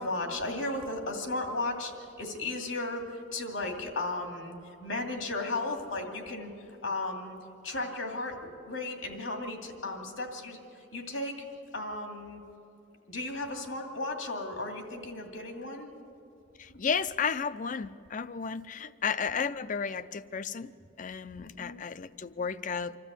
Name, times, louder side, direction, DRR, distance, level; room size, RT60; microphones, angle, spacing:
voice 1, 0.0-6.5 6.8-7.4 7.6-11.3 11.7-12.4 13.1-15.9 16.7-16.8 18.8-18.9 21.4-21.8, left 2 dB, 85° left, 3 dB, 2.5 m, -35 dB
voice 2, 16.6-20.7 21.0-23.0, left 6 dB, 40° left, 15 dB, 0.5 m, -33 dB
25.5 x 13.0 x 8.2 m, 2.7 s
head